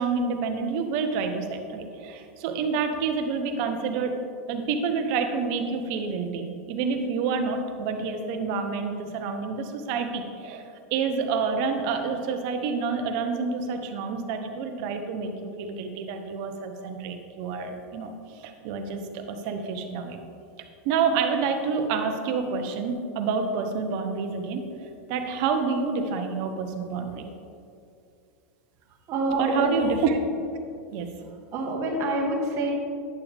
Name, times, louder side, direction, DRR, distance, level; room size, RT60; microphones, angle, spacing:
voice 1, 0.0-4.2 4.5-20.2 20.8-27.3 29.4-30.2 30.9-31.1, right 5 dB, 55° right, 6 dB, 1.1 m, -28 dB
voice 2, 29.1-29.8 31.5-32.7, right 2 dB, 40° right, -1 dB, 1.6 m, -26 dB
10.5 x 7.0 x 3.6 m, 2.4 s
hypercardioid pair, 120°, 8 cm